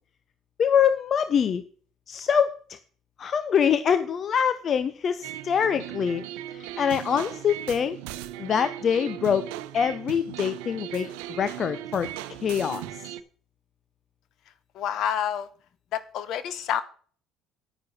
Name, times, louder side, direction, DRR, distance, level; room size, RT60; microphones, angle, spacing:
voice 1, 0.6-1.6 2.1-2.8 3.2-6.2 6.5-8.0 8.4-11.1 11.4-12.1 12.4-12.8, left 7 dB, 45° left, 12 dB, 0.8 m, -24 dB
sound 1, 5.2-13.2, right 13 dB, 75° right, 0.7 m, -38 dB
voice 2, 14.7-15.5 15.9-16.8, left 9 dB, 60° left, 13 dB, 1.3 m, -28 dB
9.9 x 9.6 x 4.3 m, 0.43 s
hypercardioid pair, 65°, 0 cm